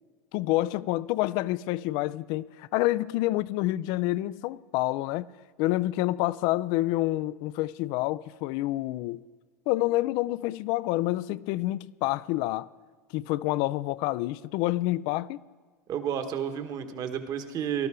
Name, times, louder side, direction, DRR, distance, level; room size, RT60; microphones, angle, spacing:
voice 1, 0.3-5.3 5.6-9.2 9.7-12.7 13.1-15.4, left 17 dB, 60° left, 0.4 m, -28 dB
voice 2, 15.9-17.9, right 8 dB, 45° right, 1.5 m, -31 dB
18.5 x 12.5 x 3.7 m
hypercardioid pair, 90°, 9 cm